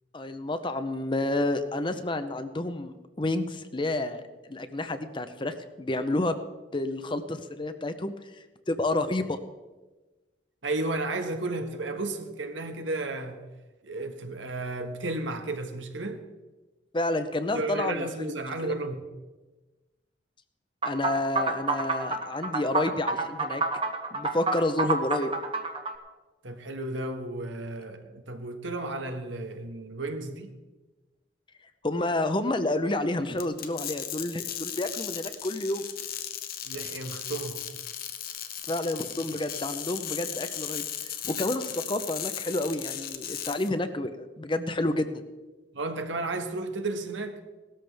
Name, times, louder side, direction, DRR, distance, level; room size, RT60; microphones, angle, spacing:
voice 1, 0.1-6.4 6.7-8.1 8.7-9.4 16.9-18.3 18.6-18.7 20.8-23.6 24.1-25.3 31.8-35.9 38.7-45.2, left 2 dB, 25° left, 0.7 m, -30 dB
voice 2, 10.6-13.4 13.8-16.2 17.5-19.0 26.4-30.5 36.6-37.6 45.7-47.4, right 2 dB, 75° right, 1.4 m, -33 dB
sound 1, 20.8-25.9, right 3 dB, 30° right, 1.0 m, -28 dB
sound 2, 33.4-43.7, left 10 dB, 50° left, 0.9 m, -36 dB
17.5 x 13.0 x 3.4 m
head